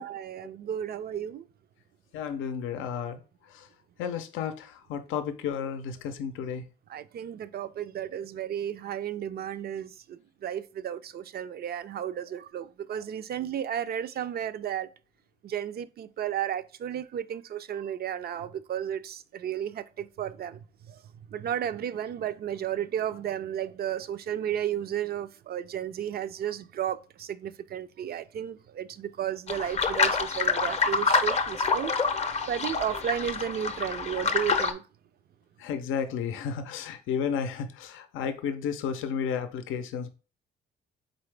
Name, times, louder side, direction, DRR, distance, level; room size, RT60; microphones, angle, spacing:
voice 1, 0.0-1.4 6.9-14.9 15.4-20.6 20.9-21.0 21.3-31.9 32.5-34.8, right 10 dB, 50° right, 0.4 m, -33 dB
voice 2, 2.1-3.2 3.5-3.7 4.0-6.6 35.6-40.1, left 7 dB, 90° left, 0.5 m, -32 dB
sound 1, 29.5-34.7, left 4 dB, 35° left, 0.6 m, -27 dB
4.0 x 3.8 x 3.2 m
cardioid pair, 90°, 20 cm